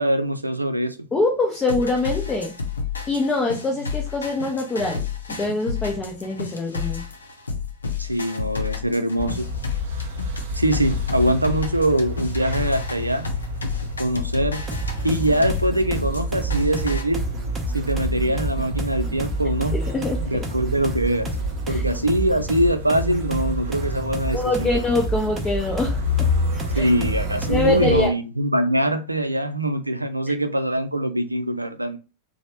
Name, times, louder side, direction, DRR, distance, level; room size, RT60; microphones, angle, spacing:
voice 1, 0.0-1.0 8.0-9.5 10.5-13.3 14.0-14.6 15.0-17.2 17.7-19.8 20.3-21.3 21.7-24.7 26.7-32.0, right 1 dB, 85° right, 0.3 m, -23 dB
voice 2, 1.1-2.6 3.1-7.0 19.7-20.5 21.7-21.8 24.3-26.0 26.7-26.9 27.5-28.1, left 2 dB, 20° left, 0.6 m, -24 dB
sound 1, 1.5-17.0, left 6 dB, 75° left, 0.6 m, -31 dB
sound 2, 9.2-28.1, left 1 dB, 60° right, 0.7 m, -29 dB
sound 3, 14.7-27.8, right 2 dB, 20° right, 0.6 m, -30 dB
3.0 x 2.0 x 2.9 m
figure-of-eight pair, 90°, 0 cm